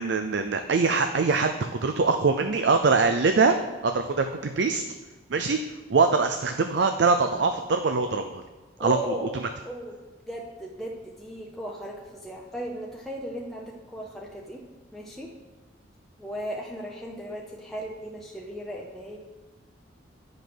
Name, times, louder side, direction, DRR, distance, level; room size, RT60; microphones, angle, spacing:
voice 1, 0.0-3.6 3.8-4.8 5.3-5.6 5.9-8.4 8.8-9.0, right 4 dB, 65° right, 7 dB, 0.5 m, -23 dB
voice 2, 8.8-9.4 9.6-9.9 10.3-14.6 14.9-15.3 16.2-19.2, equal, ahead, -2 dB, 0.7 m, -36 dB
9.0 x 5.2 x 6.1 m, 1.2 s
head